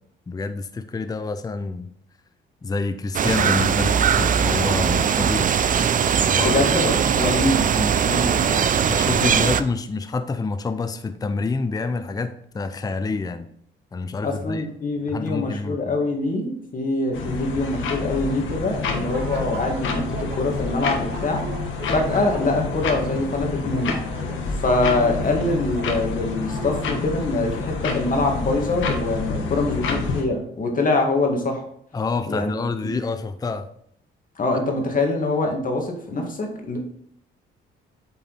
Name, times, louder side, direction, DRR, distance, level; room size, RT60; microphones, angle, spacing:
voice 1, 0.3-1.9 2.6-5.5 6.2-6.6 8.8-13.5 13.9-14.7 15.1-15.9 31.9-33.7, left 3 dB, 20° left, 10 dB, 0.5 m, -27 dB
sound 1, 3.1-9.6, right 7 dB, 40° right, 0.5 m, -20 dB
voice 2, 6.4-8.7 14.2-21.4 21.9-24.0 24.6-31.6 32.3-32.5 32.8-32.9 34.4-36.8, left 2 dB, 45° left, 2 dB, 2.0 m, -24 dB
sound 2, 17.1-30.2, left 4 dB, 75° left, 1.3 m, -28 dB
sound 3, 19.0-27.1, right 3 dB, 60° right, 2.4 m, -38 dB
8.4 x 4.2 x 4.1 m, 0.67 s
cardioid pair, 90°, 20 cm